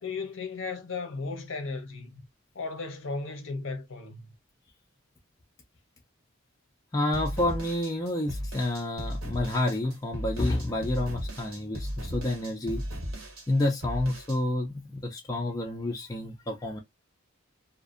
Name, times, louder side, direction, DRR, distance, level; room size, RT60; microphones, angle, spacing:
voice 1, 0.0-2.2 2.5-4.3, left 4 dB, 60° left, 0.7 m, -35 dB
voice 2, 6.9-12.8 13.5-16.8, left 1 dB, 15° left, 0.3 m, -29 dB
sound 1, 7.1-14.4, equal, 75° right, 1.0 m, -36 dB
2.5 x 2.0 x 2.4 m
head